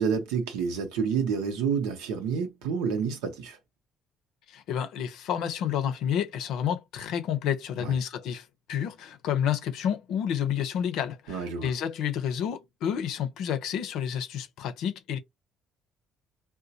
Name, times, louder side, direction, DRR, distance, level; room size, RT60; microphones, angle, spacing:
voice 1, 0.0-3.6 7.8-8.0 11.3-11.7, right 6 dB, 85° right, 0.8 m, -29 dB
voice 2, 4.5-15.2, left 9 dB, 75° left, 0.6 m, -30 dB
3.7 x 2.2 x 2.7 m
supercardioid pair, 65°, 0 cm